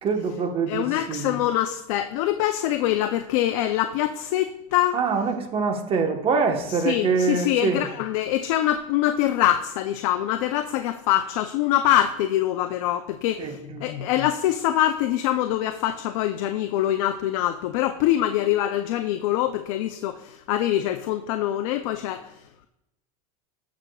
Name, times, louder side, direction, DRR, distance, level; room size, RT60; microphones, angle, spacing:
voice 1, 0.0-1.3 4.9-7.8 13.4-13.8, right 5 dB, 30° right, 4 dB, 1.2 m, -25 dB
voice 2, 0.7-5.0 6.8-22.3, left 12 dB, 75° left, 7 dB, 0.5 m, -24 dB
15.5 x 6.1 x 2.3 m, 0.86 s
supercardioid pair, 125°, 18 cm